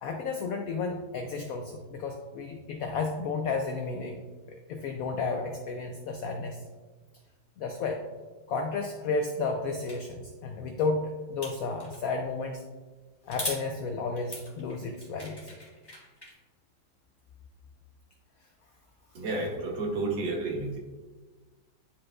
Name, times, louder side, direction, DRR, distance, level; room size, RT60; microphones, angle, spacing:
voice 1, 0.0-4.2 4.7-6.6 7.6-8.0 8.5-12.6 13.2-15.5, left 4 dB, 85° left, 4 dB, 0.7 m, -32 dB
sound 1, 9.9-10.0 11.4-12.0 13.3-13.6 14.2-16.3, left 1 dB, 15° left, 1.4 m, -39 dB
voice 2, 19.2-20.8, right 2 dB, 75° right, 0 dB, 1.9 m, -31 dB
10.0 x 4.7 x 2.4 m, 1.3 s
omnidirectional pair, 2.1 m